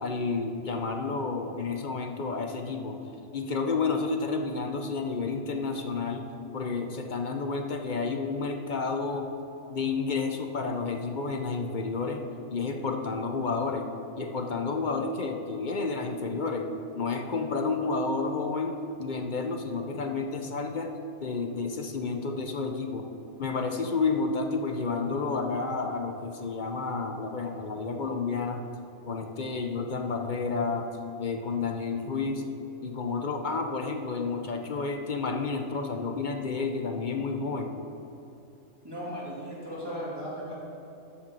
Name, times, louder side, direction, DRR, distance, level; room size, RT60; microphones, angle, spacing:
voice 1, 0.0-3.0 3.3-6.3 6.5-9.3 9.7-12.2 12.5-13.9 14.2-20.9 21.2-23.1 23.4-28.6 29.1-30.9 31.2-32.5 32.8-37.8, left 4 dB, 45° left, 3 dB, 0.7 m, -30 dB
voice 2, 38.8-40.6, equal, 20° right, -8 dB, 2.9 m, -36 dB
13.0 x 6.0 x 5.4 m, 2.9 s
omnidirectional pair, 1.3 m